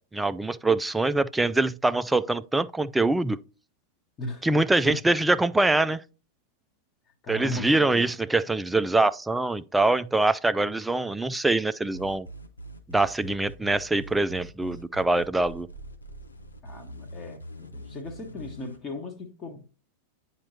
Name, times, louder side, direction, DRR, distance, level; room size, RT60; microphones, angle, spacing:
voice 1, 0.0-3.4 4.4-6.0 7.3-12.3 12.9-15.7, right 2 dB, 5° right, 0.3 m, -24 dB
voice 2, 7.2-8.0 16.6-19.6, left 2 dB, 25° left, 1.1 m, -37 dB
sound 1, 11.9-18.8, right 1 dB, 80° left, 0.8 m, -43 dB
9.8 x 4.4 x 2.8 m
figure-of-eight pair, 90°, 0 cm